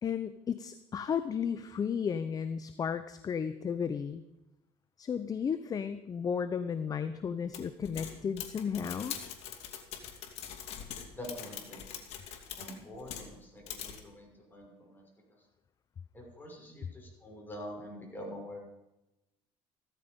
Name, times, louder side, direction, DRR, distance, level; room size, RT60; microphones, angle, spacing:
voice 1, 0.0-4.2 5.0-9.1, left 7 dB, 30° left, 12 dB, 0.7 m, -34 dB
sound 1, 7.5-13.3 13.7-14.0, left 9 dB, 60° left, 2.5 m, -43 dB
voice 2, 11.1-11.8 12.6-15.0 16.1-18.6, equal, 15° left, -1 dB, 6.0 m, -45 dB
15.5 x 13.5 x 5.3 m, 0.93 s
cardioid pair, 115°, 12 cm